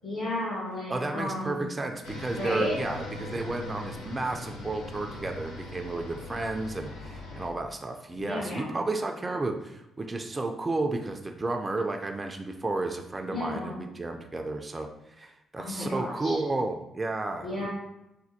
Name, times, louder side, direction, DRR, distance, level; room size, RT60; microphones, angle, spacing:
voice 1, 0.0-1.7 2.3-2.7 8.2-8.8 13.3-13.8 15.6-16.4 17.4-17.7, left 1 dB, 70° left, -7 dB, 1.3 m, -33 dB
voice 2, 0.9-14.9 15.2-17.7, right 2 dB, 30° right, 4 dB, 0.4 m, -32 dB
sound 1, 2.0-7.5, left 2 dB, 90° left, 0.6 m, -40 dB
4.2 x 2.2 x 2.7 m, 0.89 s
hypercardioid pair, 50°, 0 cm